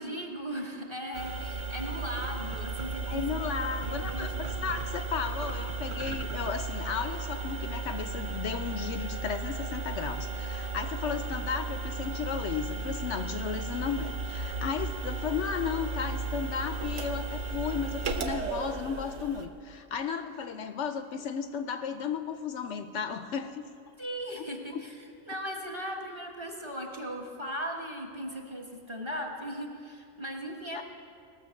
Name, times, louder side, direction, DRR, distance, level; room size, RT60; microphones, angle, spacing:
voice 1, 0.0-3.3 3.8-4.5 13.5-13.6 24.0-24.9 25.3-30.8, equal, 25° right, 0 dB, 1.2 m, -38 dB
sound 1, 1.1-19.5, right 3 dB, 75° right, 1.2 m, -35 dB
voice 2, 3.1-23.6 24.7-24.8 30.7-30.8, left 6 dB, 70° left, 9 dB, 0.9 m, -34 dB
19.0 x 6.8 x 6.4 m, 2.3 s
omnidirectional pair, 1.3 m